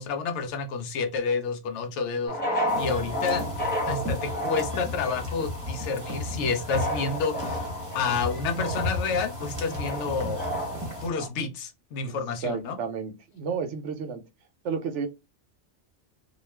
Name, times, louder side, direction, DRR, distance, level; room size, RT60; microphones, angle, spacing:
voice 1, 0.0-3.4 3.9-7.7 7.9-10.5 11.0-12.8, left 5 dB, 80° left, 0.9 m, -29 dB
sound 1, 2.3-11.3, equal, 10° left, 1.0 m, -33 dB
sound 2, 2.7-11.1, left 1 dB, 15° right, 0.9 m, -35 dB
voice 2, 12.4-14.2 14.6-15.1, right 6 dB, 80° right, 0.9 m, -31 dB
2.3 x 2.3 x 3.2 m
omnidirectional pair, 1.2 m